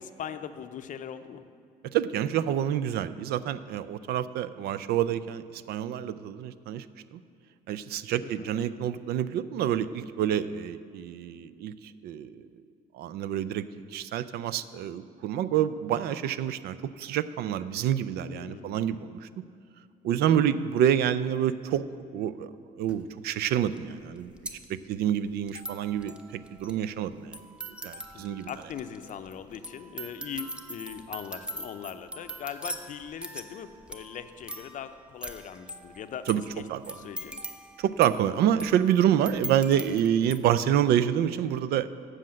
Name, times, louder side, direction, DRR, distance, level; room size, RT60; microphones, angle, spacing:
voice 1, 0.0-1.4 8.2-8.5 18.3-18.8 20.3-20.6 28.1-37.4, left 8 dB, 50° left, 10 dB, 0.5 m, -40 dB
voice 2, 1.9-6.8 7.1-7.2 7.7-11.7 12.0-12.3 12.9-13.7 13.9-19.3 20.0-21.8 22.1-22.5 22.8-24.3 24.7-27.4 27.8-28.5 36.3-36.4 36.7-37.0 37.8-41.9, right 10 dB, 70° right, 14 dB, 0.4 m, -27 dB
sound 1, 22.9-23.0 23.8-23.9 24.0-40.4, right 1 dB, 5° right, 0.6 m, -42 dB
7.7 x 6.3 x 7.5 m, 2.3 s
cardioid pair, 110°, 17 cm